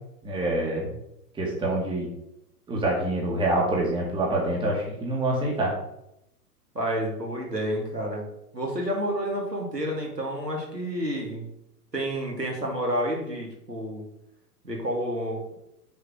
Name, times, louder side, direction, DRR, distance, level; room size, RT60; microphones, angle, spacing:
voice 1, 0.2-0.9 1.4-2.1 2.7-5.7, right 1 dB, 10° right, -2 dB, 2.0 m, -26 dB
voice 2, 6.7-8.2 8.5-11.5 11.9-14.0 14.6-15.4, equal, 90° right, -1 dB, 2.6 m, -29 dB
6.6 x 5.0 x 6.4 m, 0.82 s
figure-of-eight pair, 110°, 47 cm